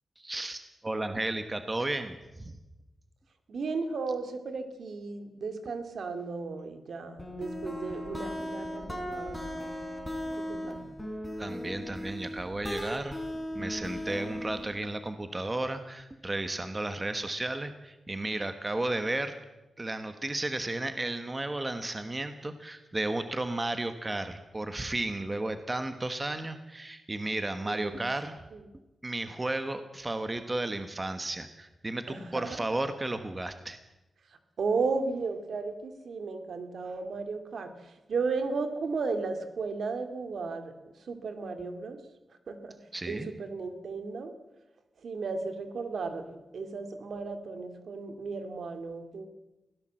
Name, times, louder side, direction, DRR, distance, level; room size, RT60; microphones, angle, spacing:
voice 1, 0.2-2.6 11.4-13.2 13.5-19.3 19.8-28.4 29.0-33.8 42.9-43.3, right 2 dB, 20° right, 9 dB, 1.2 m, -33 dB
voice 2, 3.5-9.7 10.3-10.9 27.7-28.0 28.5-28.6 32.1-32.6 34.6-40.7 41.0-42.0 42.5-42.8 43.1-44.3 45.0-49.3, right 4 dB, 65° right, 8 dB, 2.5 m, -35 dB
sound 1, 7.2-14.8, equal, 5° left, 4.5 m, -37 dB
23.5 x 17.0 x 7.6 m, 1.0 s
wide cardioid pair, 175°, 0 cm